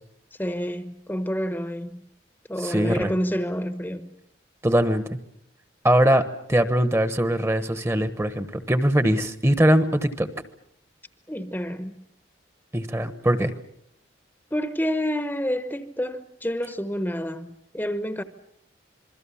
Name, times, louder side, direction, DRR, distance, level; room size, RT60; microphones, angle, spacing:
voice 1, 0.4-2.0 2.5-4.1 11.3-12.0 14.5-18.2, equal, 10° left, 1.0 m, -28 dB
voice 2, 2.6-3.1 4.6-5.0 5.8-6.2 6.5-10.3 12.7-13.5, right 1 dB, 15° right, 1.1 m, -21 dB
27.0 x 22.0 x 7.2 m
head